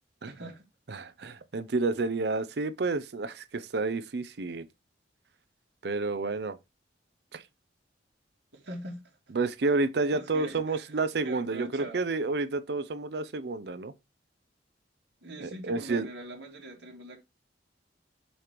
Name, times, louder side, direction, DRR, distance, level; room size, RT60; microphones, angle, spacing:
voice 1, 0.3-0.6 8.5-9.2 10.1-10.9 11.2-12.0 15.2-17.2, right 1 dB, 75° right, 2.2 m, -42 dB
voice 2, 0.9-4.7 5.8-6.6 7.3-7.4 9.3-13.9 15.4-16.1, right 3 dB, 60° right, 0.5 m, -30 dB
7.0 x 3.0 x 5.0 m
head